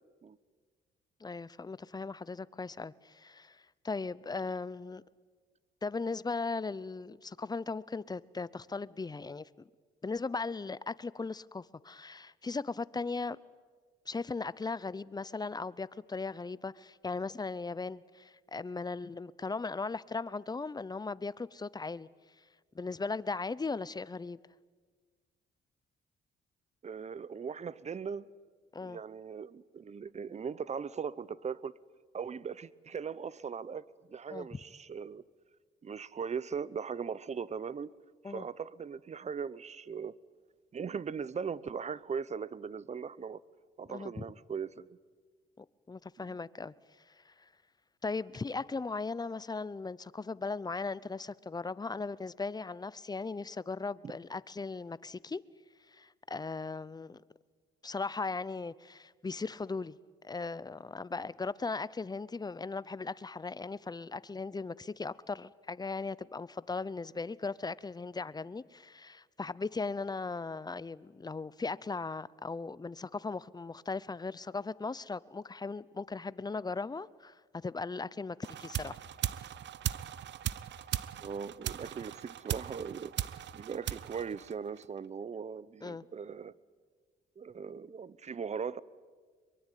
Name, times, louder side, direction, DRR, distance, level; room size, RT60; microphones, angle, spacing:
voice 1, 1.2-5.0 5.8-9.5 10.0-13.4 14.1-22.1 22.7-24.4 28.7-29.0 34.3-34.6 38.2-38.5 43.9-44.2 45.6-46.7 47.2-47.3 48.0-55.4 55.9-57.2 57.8-60.0 60.2-79.0 85.8-86.0, left 4 dB, 20° left, 0.7 m, -38 dB
voice 2, 26.8-28.3 28.8-31.7 32.1-35.2 35.8-37.9 38.2-40.2 40.7-43.4 43.8-45.0 46.2-46.4 81.2-83.1 83.5-86.5 87.4-88.8, right 6 dB, 35° right, 0.8 m, -39 dB
sound 1, 78.4-85.0, right 11 dB, 65° right, 0.9 m, -38 dB
23.5 x 23.0 x 9.3 m
cardioid pair, 90°, 20 cm